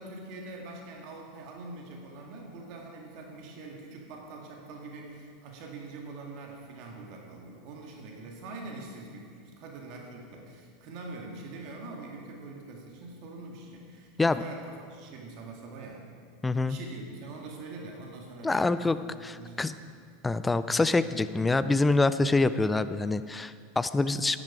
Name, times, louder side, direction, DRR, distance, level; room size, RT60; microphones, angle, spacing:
voice 1, 0.0-16.1 16.7-19.8 22.2-22.4, right 3 dB, 50° right, 0 dB, 2.0 m, -44 dB
voice 2, 16.4-16.8 18.4-19.7 20.2-24.4, left 3 dB, 10° left, 13 dB, 0.5 m, -26 dB
12.5 x 10.5 x 4.9 m, 2.2 s
figure-of-eight pair, 85°, 0 cm